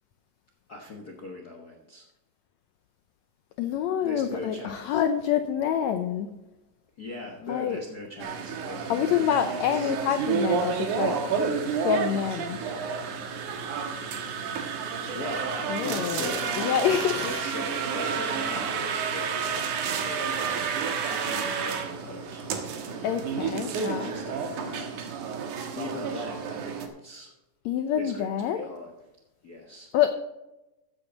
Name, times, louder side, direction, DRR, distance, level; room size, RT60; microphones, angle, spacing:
voice 1, 0.7-2.1 4.0-5.0 7.0-9.9 15.0-19.6 19.9-20.7 21.2-24.9 25.7-27.3 28.0-28.9 29.4-29.9, left 2 dB, 65° left, 1 dB, 0.9 m, -40 dB
voice 2, 3.6-6.3 7.5-7.8 8.9-11.1 11.6-12.6 15.7-17.4 23.0-24.1 27.6-28.7 29.9-30.1, left 9 dB, 80° left, 8 dB, 1.6 m, -27 dB
sound 1, 8.2-26.9, right 6 dB, 70° right, 2.7 m, -30 dB
sound 2, 15.3-22.2, left 3 dB, ahead, 4.5 m, -48 dB
14.5 x 8.3 x 4.0 m, 0.98 s
omnidirectional pair, 3.8 m